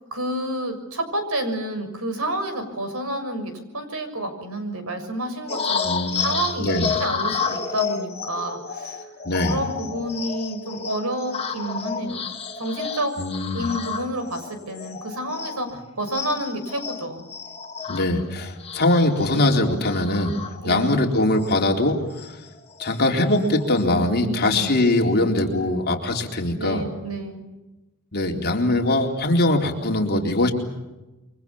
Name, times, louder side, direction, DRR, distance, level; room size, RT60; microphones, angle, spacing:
voice 1, 0.1-9.1 9.5-13.1 13.5-17.2 20.6-21.0 24.2-24.7 26.6-27.5, right 1 dB, 75° right, 8 dB, 6.6 m, -29 dB
sound 1, 5.5-15.8 16.1-21.0 21.4-21.5 21.8-23.0 23.4-23.8, left 6 dB, 30° left, 2.7 m, -31 dB
voice 2, 5.9-6.3 6.6-6.9 9.2-9.6 13.2-13.7 17.9-20.4 20.6-22.0 22.8-26.9 28.1-30.5, left 2 dB, 45° left, 2 dB, 4.0 m, -21 dB
28.5 x 24.0 x 7.2 m, 1.0 s
head